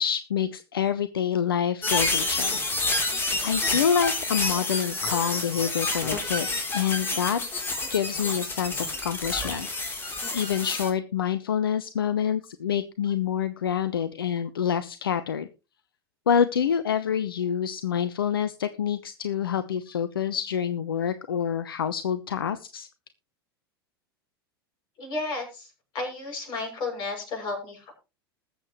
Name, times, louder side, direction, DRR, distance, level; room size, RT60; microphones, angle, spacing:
voice 1, 0.0-3.0 3.4-7.4 7.9-15.5 16.3-22.9, left 8 dB, 70° left, 13 dB, 0.8 m, -27 dB
sound 1, 1.8-10.9, left 2 dB, 15° left, 3.4 m, -28 dB
voice 2, 25.0-27.9, left 3 dB, 40° left, 1 dB, 7.1 m, -33 dB
20.5 x 7.7 x 3.1 m, 0.29 s
figure-of-eight pair, 85°, 13 cm